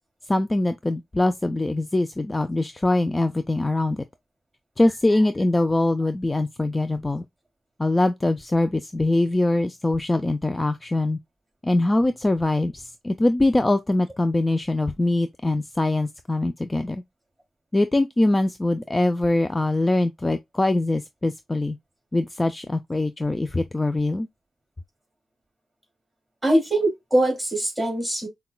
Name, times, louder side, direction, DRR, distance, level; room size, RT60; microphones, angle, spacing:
voice 1, 0.3-4.0 4.8-7.2 7.8-11.2 11.6-17.0 17.7-21.8 22.1-24.3, left 2 dB, 20° left, 0.3 m, -23 dB
voice 2, 26.4-28.3, right 1 dB, 10° right, 2.7 m, -22 dB
5.7 x 2.2 x 2.2 m
cardioid pair, 90°, 0 cm